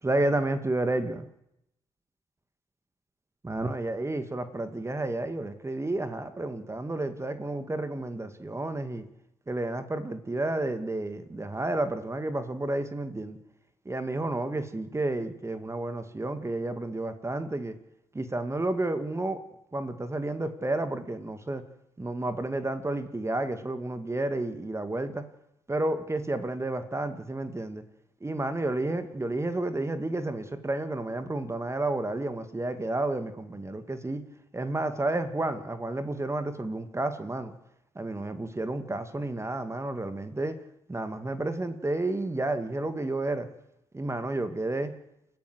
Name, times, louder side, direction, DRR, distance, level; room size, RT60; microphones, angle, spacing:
voice 1, 0.0-1.3 3.4-9.0 9.5-13.4 13.9-17.7 18.1-19.4 19.7-21.6 22.0-25.2 25.7-27.8 28.2-34.2 34.5-37.5 38.0-40.5 40.9-43.5 43.9-44.9, right 2 dB, 20° right, 2.2 m, -31 dB
29.0 x 12.5 x 8.1 m
hypercardioid pair, 40°, 13 cm